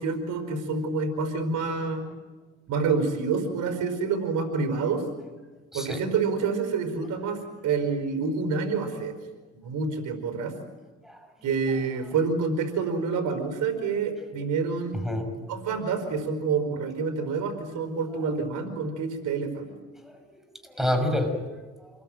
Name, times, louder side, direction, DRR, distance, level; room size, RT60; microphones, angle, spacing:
voice 1, 0.0-2.0 2.7-5.1 5.7-9.2 9.5-10.5 11.4-15.0 15.5-19.7, right 4 dB, 80° right, 8 dB, 5.1 m, -28 dB
voice 2, 20.0-21.9, left 1 dB, ahead, 6 dB, 5.9 m, -29 dB
28.0 x 22.0 x 9.2 m, 1.3 s
cardioid pair, 90°, 30 cm